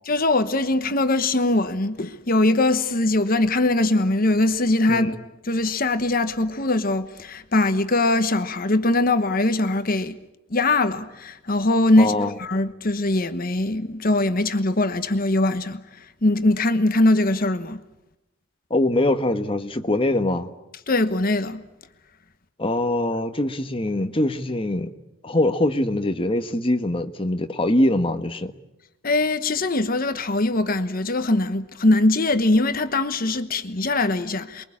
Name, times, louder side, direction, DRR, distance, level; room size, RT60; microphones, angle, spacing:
voice 1, 0.0-5.2 5.4-10.2 10.5-17.8 20.9-21.6 29.0-34.6, left 2 dB, 45° left, 1.1 m, -21 dB
voice 2, 12.0-12.3 18.7-20.5 22.6-24.9 25.2-28.5, left 1 dB, 25° left, 1.3 m, -23 dB
28.5 x 22.0 x 8.6 m
head